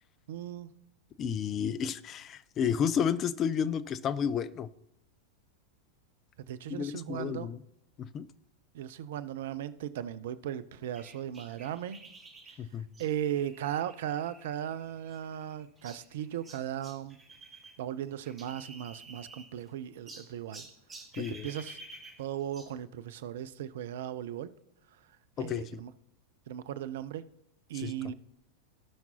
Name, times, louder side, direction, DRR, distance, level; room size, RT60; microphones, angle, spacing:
voice 1, 0.3-0.7 1.2-1.3 6.5-7.5 8.7-12.0 13.0-17.2 17.8-20.7 21.2-21.8 22.2-24.5 25.4-25.9 26.5-27.2 27.7-28.1, right 10 dB, 55° right, 0.5 m, -37 dB
voice 2, 1.2-4.7 6.7-7.6 8.0-8.3 12.6-12.9 21.2-21.5 25.4-25.8 27.7-27.9, left 8 dB, 30° left, 0.5 m, -31 dB
sound 1, 10.9-17.8 18.0-19.7 20.1-22.8, right 3 dB, 20° right, 1.7 m, -51 dB
17.0 x 5.9 x 2.9 m
figure-of-eight pair, 90°, 0 cm